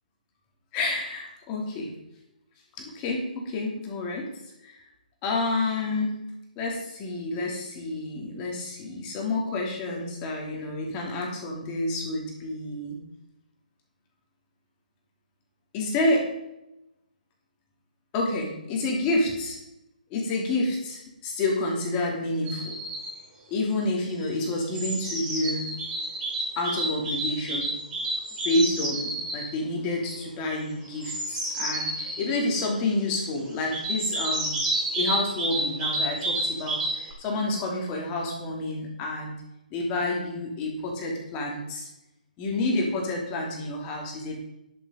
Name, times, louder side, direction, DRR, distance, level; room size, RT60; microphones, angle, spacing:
voice 1, 0.7-1.9 2.8-4.3 4.6-4.8 5.2-6.2 6.6-13.0 15.7-16.3 18.1-19.6 20.1-22.8 23.5-25.7 26.6-27.7 28.4-34.6 34.9-39.3 39.7-41.9 42.4-44.3, left 2 dB, 25° left, -1 dB, 2.9 m, -29 dB
sound 1, 22.5-23.1 24.2-29.5 30.8-32.4 33.7-37.1, right 1 dB, 20° right, 4.9 m, -29 dB
10.5 x 7.7 x 5.2 m, 0.90 s
figure-of-eight pair, 140°, 5 cm